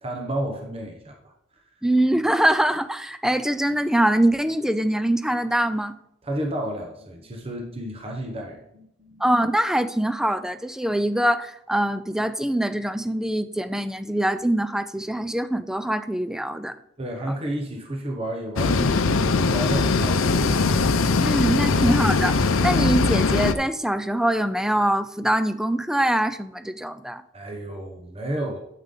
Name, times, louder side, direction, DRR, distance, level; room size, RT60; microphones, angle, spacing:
voice 1, 0.0-1.3 6.2-9.2 17.0-20.6 27.3-28.6, right 1 dB, 30° right, 2 dB, 1.0 m, -31 dB
voice 2, 1.8-5.9 9.2-16.8 21.2-22.4 22.6-27.2, right 1 dB, 5° right, 11 dB, 0.4 m, -23 dB
sound 1, 18.6-23.5, left 3 dB, 90° left, 0.6 m, -21 dB
8.9 x 8.2 x 3.8 m, 0.78 s
head